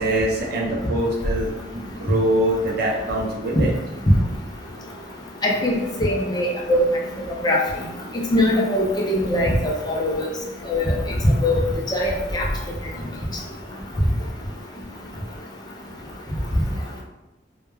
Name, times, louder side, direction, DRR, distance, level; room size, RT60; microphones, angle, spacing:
voice 1, 0.0-3.7, right 1 dB, 60° right, -2 dB, 0.6 m, -24 dB
voice 2, 5.4-6.8 7.4-7.6 8.3-10.3 10.7-10.9 11.2-11.6 11.9-12.5, left 1 dB, 20° left, -2 dB, 0.4 m, -21 dB
2.2 x 2.1 x 3.1 m, 0.97 s
head